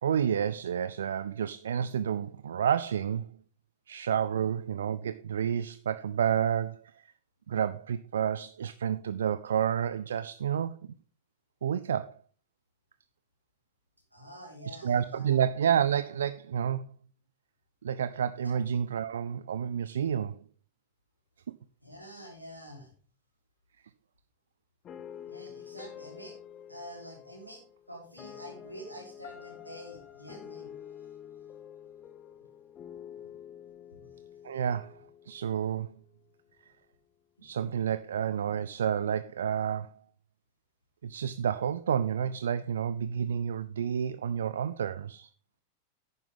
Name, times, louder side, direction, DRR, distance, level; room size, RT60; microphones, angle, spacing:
voice 1, 0.0-3.3 3.9-7.1 7.5-10.8 11.6-12.2 14.7-16.9 17.8-20.4 34.4-35.9 37.4-40.0 41.0-45.3, right 8 dB, 65° right, 0.4 m, -30 dB
voice 2, 14.1-15.4 18.4-18.6 21.8-22.9 25.2-26.4 26.7-30.7 31.0-31.1 33.9-34.1 37.4-37.5, equal, 90° right, 3.7 m, -47 dB
sound 1, 24.8-36.0, left 9 dB, 30° left, 0.9 m, -48 dB
11.0 x 9.5 x 3.6 m
figure-of-eight pair, 90°, 0 cm